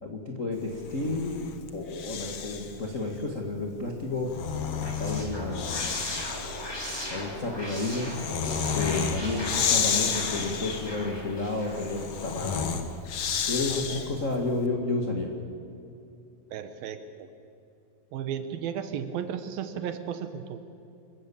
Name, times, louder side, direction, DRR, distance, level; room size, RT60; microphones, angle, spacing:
voice 1, 0.0-4.3 4.8-6.1 7.1-8.1 8.7-12.7 13.5-15.3, left 3 dB, 45° left, 1 dB, 1.0 m, -31 dB
Breathing, 0.8-2.8 4.0-14.3, left 7 dB, 70° left, 1.4 m, -31 dB
sound 1, 4.6-12.7, equal, 5° left, 3.3 m, -38 dB
voice 2, 13.7-14.1 16.5-17.3 18.1-20.6, right 8 dB, 70° right, 10 dB, 2.6 m, -35 dB
26.0 x 14.5 x 8.6 m, 2.7 s
omnidirectional pair, 4.7 m